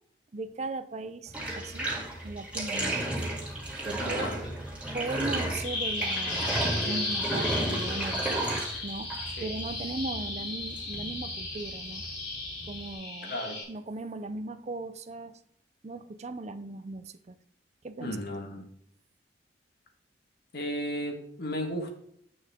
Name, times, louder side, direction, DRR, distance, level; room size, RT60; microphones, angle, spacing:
voice 1, 0.3-1.9 2.2-3.2 3.8-4.3 4.9-8.4 8.8-9.1 9.4-12.0 12.7-13.3 13.7-15.4 15.8-17.4 17.8-18.2 18.5-18.6, right 2 dB, 35° right, 11 dB, 0.5 m, -38 dB
Bathtub (filling or washing), 1.3-12.9, right 1 dB, 5° right, 1.9 m, -33 dB
voice 2, 4.0-4.4 9.4-9.5 13.2-13.6 18.0-18.7 20.5-22.0, equal, 60° left, 4 dB, 1.6 m, -34 dB
Bird vocalization bird call bird song, 5.6-13.6, left 2 dB, 75° left, 2.8 m, -35 dB
8.8 x 6.4 x 3.6 m, 0.71 s
head